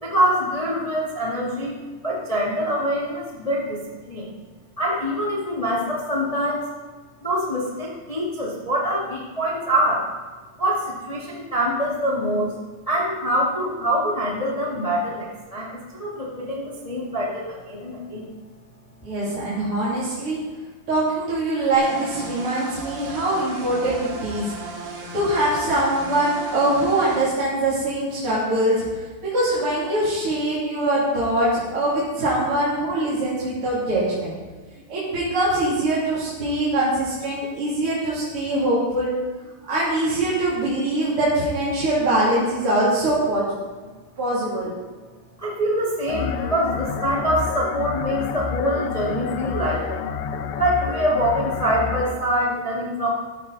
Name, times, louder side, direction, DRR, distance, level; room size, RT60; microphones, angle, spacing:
voice 1, 0.0-3.8 4.1-4.3 4.8-6.6 7.2-10.0 10.6-12.5 12.9-18.3 45.4-50.0 50.5-53.1, equal, 65° left, -4 dB, 0.3 m, -24 dB
voice 2, 19.0-20.4 20.9-24.5 25.1-28.8 29.2-34.3 34.9-39.1 39.7-43.6 44.2-44.7, right 1 dB, 35° right, -9 dB, 3.3 m, -23 dB
sound 1, 21.7-27.3, right 2 dB, 60° right, 3.6 m, -36 dB
sound 2, 46.1-52.1, left 6 dB, 90° left, 3.0 m, -29 dB
14.5 x 10.5 x 4.1 m, 1.4 s
omnidirectional pair, 4.9 m